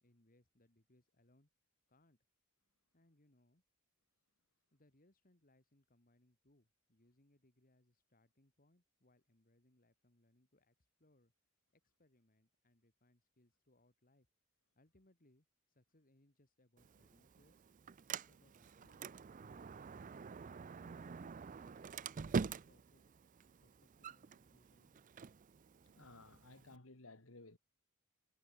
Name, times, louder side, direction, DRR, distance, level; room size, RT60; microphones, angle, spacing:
voice 1, 0.0-1.5 1.9-2.2 2.9-3.6 4.7-11.3 11.7-14.3 14.7-17.6 18.1-23.0 23.6-25.1, left 1 dB, 45° left, 2.8 m, -73 dB
Sliding door, 16.8-26.8, right 5 dB, 40° right, 0.4 m, -46 dB
voice 2, 25.8-27.6, left 2 dB, 80° left, 2.5 m, -58 dB
head